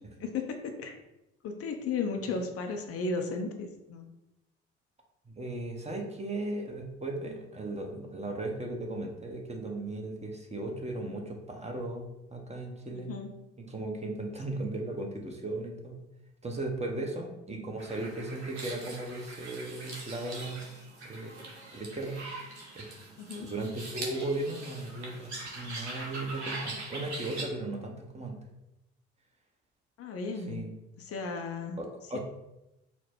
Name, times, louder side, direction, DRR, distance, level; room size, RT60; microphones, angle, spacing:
voice 1, 0.2-1.0 1.4-4.1 13.1-13.3 23.2-23.5 30.0-30.7 31.1-31.8 32.1-32.2, left 4 dB, 45° left, 4 dB, 0.6 m, -35 dB
voice 2, 5.3-13.1 13.6-16.0 16.4-21.4 21.7-22.2 22.8-22.9 23.4-28.4 30.5-30.7 31.8-32.2, right 2 dB, 20° right, 2 dB, 0.9 m, -36 dB
sound 1, 17.8-27.4, right 2 dB, 90° right, 0.8 m, -42 dB
4.2 x 2.2 x 4.4 m, 0.93 s
hypercardioid pair, 50°, 32 cm